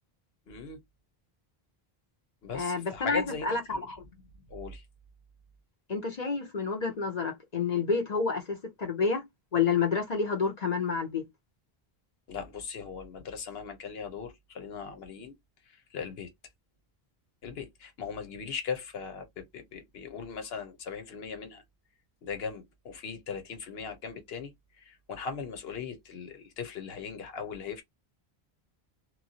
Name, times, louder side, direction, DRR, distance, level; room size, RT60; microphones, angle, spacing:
voice 1, 0.5-0.8 2.4-3.9 4.5-4.8 12.3-15.4 15.9-16.3 17.4-21.6 22.2-24.5 24.8-27.8, left 6 dB, 75° left, 1.0 m, -39 dB
voice 2, 2.5-4.0 5.9-9.2 9.5-11.3, left 5 dB, 50° left, 0.7 m, -29 dB
2.9 x 2.2 x 2.7 m
omnidirectional pair, 1.0 m